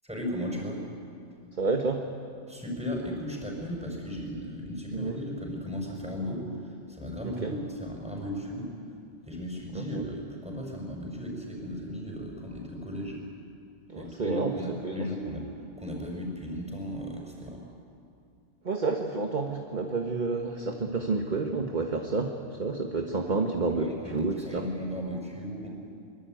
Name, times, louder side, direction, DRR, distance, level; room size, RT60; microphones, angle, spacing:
voice 1, 0.0-0.8 2.5-8.7 9.3-13.2 14.0-15.5 15.8-17.6 23.7-25.7, equal, 5° right, -1 dB, 5.6 m, -36 dB
voice 2, 1.6-2.0 4.9-5.1 7.2-7.5 9.7-10.1 13.9-15.1 18.6-24.6, right 3 dB, 40° right, 3 dB, 1.5 m, -30 dB
23.5 x 22.5 x 9.2 m, 2.5 s
omnidirectional pair, 1.2 m